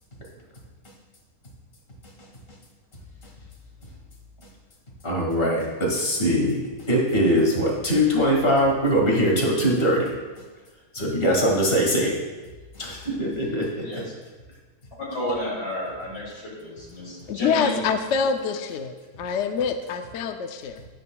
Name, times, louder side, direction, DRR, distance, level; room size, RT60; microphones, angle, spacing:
voice 1, 5.0-10.1 10.9-12.1 12.7-13.9, equal, 35° left, -2 dB, 2.2 m, -22 dB
voice 2, 13.8-14.1 15.0-17.7, equal, 85° left, -4 dB, 3.3 m, -31 dB
voice 3, 17.3-20.9, left 6 dB, 65° left, 7 dB, 0.7 m, -26 dB
12.0 x 10.5 x 2.3 m, 1.3 s
omnidirectional pair, 1.7 m